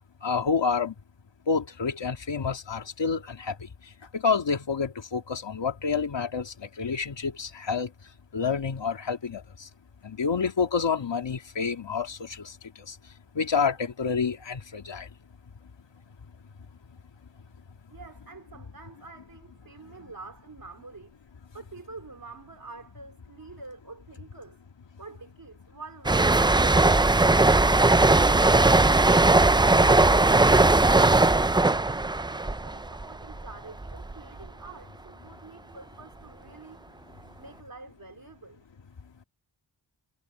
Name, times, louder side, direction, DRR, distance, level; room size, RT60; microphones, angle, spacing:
voice 1, 0.2-0.9 1.5-3.5 4.1-7.9 8.3-9.7 10.0-12.5 12.9-13.0 13.4-15.1, left 5 dB, 75° left, 2.3 m, -28 dB
voice 2, 17.9-21.2 21.5-24.6 25.0-30.8 31.3-36.8 37.4-38.6, right 3 dB, 50° right, 3.6 m, -47 dB
sound 1, 26.0-33.5 33.8-34.1, right 2 dB, 10° right, 0.4 m, -19 dB
wide cardioid pair, 105°, 44 cm